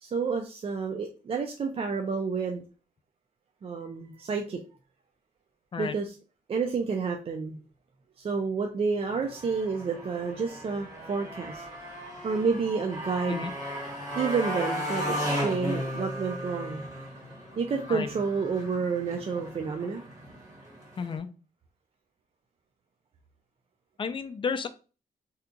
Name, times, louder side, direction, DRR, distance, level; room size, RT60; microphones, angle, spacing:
voice 1, 0.0-2.6 3.6-4.6 5.8-6.1 6.5-7.6 8.2-11.7 12.2-13.4 14.2-16.8 17.6-20.0, right 5 dB, 40° right, 3 dB, 0.4 m, -30 dB
Motorcycle, 9.1-21.2, equal, 20° right, 1.3 m, -36 dB
voice 2, 21.0-21.3 24.0-24.7, left 5 dB, 30° left, 9 dB, 0.4 m, -32 dB
2.8 x 2.3 x 3.6 m, 0.34 s
wide cardioid pair, 125°, 16 cm